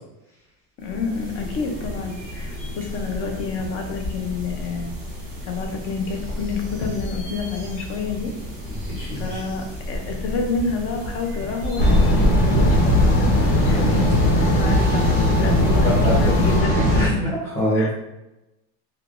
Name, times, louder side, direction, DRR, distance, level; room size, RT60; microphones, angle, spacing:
voice 1, 0.8-5.0 5.5-8.3 9.2-13.2 13.7-16.7 17.7-17.9, left 4 dB, 40° left, 2 dB, 0.5 m, -29 dB
sound 1, 0.8-16.6, equal, 20° right, 0.9 m, -33 dB
voice 2, 8.8-9.4 13.5-13.9 15.8-16.1 16.9-17.9, equal, 10° left, -12 dB, 0.8 m, -25 dB
sound 2, 11.8-17.1, left 1 dB, 70° left, 1.2 m, -18 dB
3.1 x 2.3 x 2.4 m, 0.97 s
cardioid pair, 160°, 37 cm